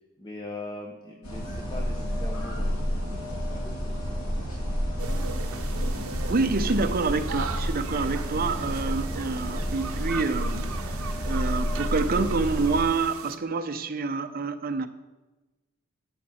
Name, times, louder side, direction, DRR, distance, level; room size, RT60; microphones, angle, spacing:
voice 1, 0.2-3.0 3.5-4.6, left 2 dB, 20° left, 0 dB, 1.0 m, -41 dB
sound 1, 1.2-12.8, equal, 80° left, 2.4 m, -30 dB
sound 2, 5.0-10.0, equal, 60° left, 2.5 m, -45 dB
sound 3, 5.0-13.4, right 5 dB, 70° right, 0.8 m, -39 dB
voice 2, 6.3-14.9, right 4 dB, 45° right, 9 dB, 0.6 m, -27 dB
13.5 x 7.3 x 4.3 m, 1.2 s
head